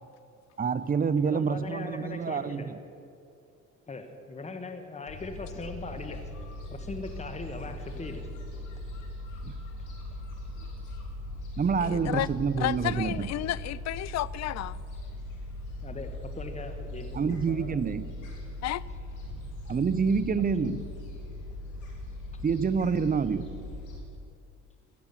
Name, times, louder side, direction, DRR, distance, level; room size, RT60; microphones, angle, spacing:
voice 1, 0.6-2.8 9.4-9.5 11.6-13.3 17.1-18.1 19.7-20.8 22.4-23.5, right 5 dB, 30° right, 0.7 m, -27 dB
voice 2, 1.2-2.7 3.9-6.2 6.7-8.3 15.8-17.8 22.3-22.4, left 3 dB, 20° left, 1.2 m, -40 dB
Gull seagull, 5.1-24.0, left 1 dB, 85° left, 3.0 m, -40 dB
voice 3, 11.8-12.3 12.6-14.8 18.6-18.8, left 14 dB, 65° left, 0.4 m, -31 dB
16.0 x 7.3 x 8.3 m
cardioid pair, 90°, 30 cm